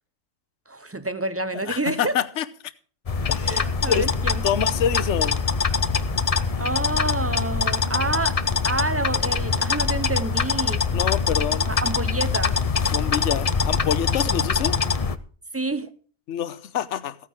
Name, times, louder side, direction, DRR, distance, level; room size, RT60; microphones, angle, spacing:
voice 1, 0.7-2.1 3.4-4.4 6.6-8.4 8.6-10.8 11.7-12.6 15.5-15.9, right 2 dB, 20° right, 0.4 m, -28 dB
voice 2, 1.7-2.4 3.3-4.1 4.4-5.4 10.9-11.7 12.9-14.8 16.3-17.2, left 9 dB, 65° left, 1.1 m, -26 dB
sound 1, 3.1-15.2, left 5 dB, 35° left, 0.6 m, -23 dB
15.0 x 9.6 x 4.7 m
omnidirectional pair, 1.4 m